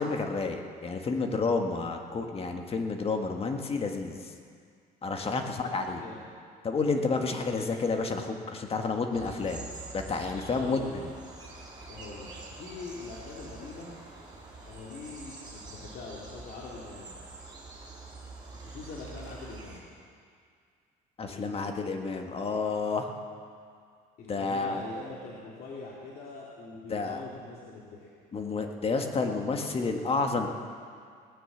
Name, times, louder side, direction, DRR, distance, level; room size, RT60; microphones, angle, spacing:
voice 1, 0.0-4.2 5.0-6.0 6.6-9.7 9.9-10.8 21.2-23.1 24.3-24.8 26.9-27.2 28.3-30.5, left 4 dB, 35° left, 4 dB, 1.6 m, -30 dB
voice 2, 5.3-6.2 6.8-7.2 10.4-11.0 11.8-13.9 14.6-17.2 18.5-19.8 21.2-21.8 24.2-28.1, left 3 dB, 65° left, -4 dB, 2.4 m, -44 dB
sound 1, 9.1-19.8, right 3 dB, 25° right, 4.8 m, -46 dB
18.0 x 9.7 x 7.3 m, 2.2 s
cardioid pair, 110°, 17 cm